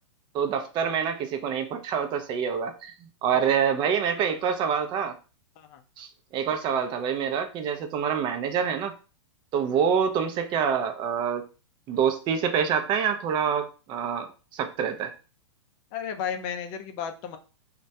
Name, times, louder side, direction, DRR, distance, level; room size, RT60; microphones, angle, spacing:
voice 1, 0.3-5.1 6.0-9.0 9.5-11.4 11.9-15.1, right 7 dB, 30° right, 7 dB, 0.4 m, -26 dB
voice 2, 15.9-17.4, left 8 dB, 40° left, 6 dB, 0.4 m, -33 dB
2.2 x 2.1 x 2.7 m, 0.34 s
hypercardioid pair, 120°, 16 cm